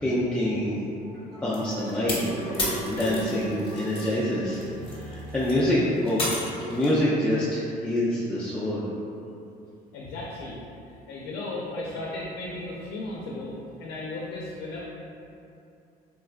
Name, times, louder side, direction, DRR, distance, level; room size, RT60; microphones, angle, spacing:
voice 1, 0.0-0.8 1.4-2.3 2.6-4.6 4.9-6.2 6.5-8.8, left 1 dB, 10° left, -9 dB, 0.3 m, -26 dB
sound 1, 1.0-6.4, right 2 dB, 80° right, 1.1 m, -36 dB
sound 2, 1.5-4.1 4.5-7.0, left 2 dB, 30° left, 0.9 m, -33 dB
voice 2, 9.9-10.6 11.1-14.8, left 2 dB, 80° left, -4 dB, 0.5 m, -35 dB
3.6 x 2.2 x 2.4 m, 2.6 s
cardioid pair, 110°, 17 cm